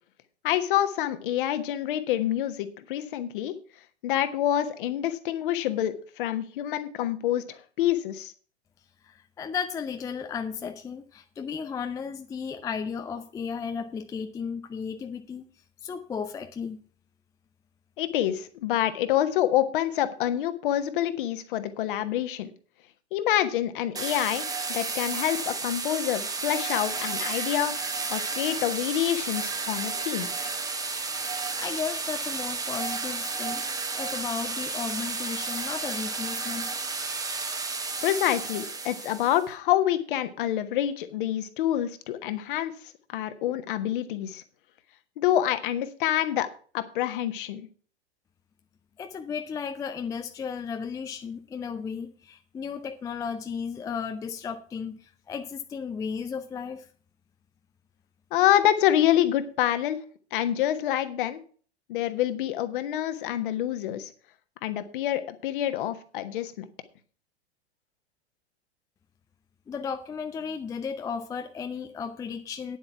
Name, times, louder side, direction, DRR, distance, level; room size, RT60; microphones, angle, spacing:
voice 1, 0.4-3.5 4.0-8.3 18.0-22.5 23.1-27.7 28.1-30.3 38.0-42.7 43.1-44.4 45.2-46.5 46.7-47.7 58.3-60.0 60.3-61.4 61.9-64.1 64.6-66.6, left 12 dB, 50° left, 1.3 m, -27 dB
voice 2, 9.0-15.4 15.8-16.8 31.6-33.6 34.0-36.7 49.0-56.9 69.7-72.8, left 6 dB, 10° left, 0.5 m, -34 dB
Pipe Cutter - Stereo, 24.0-39.4, right 4 dB, 10° right, 1.1 m, -32 dB
9.7 x 7.9 x 5.8 m
figure-of-eight pair, 90°, 34 cm